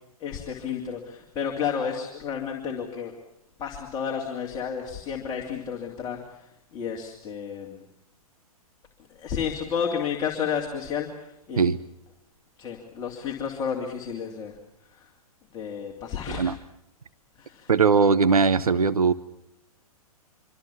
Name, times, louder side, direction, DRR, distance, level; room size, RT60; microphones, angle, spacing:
voice 1, 0.2-3.1 3.6-7.9 9.2-11.6 12.6-14.5 14.9-15.1 15.5-16.5 17.4-17.7, left 7 dB, 20° left, 1 dB, 2.7 m, -31 dB
voice 2, 17.7-19.1, right 5 dB, 70° right, 14 dB, 0.8 m, -20 dB
25.5 x 25.0 x 7.2 m, 0.85 s
figure-of-eight pair, 115°, 19 cm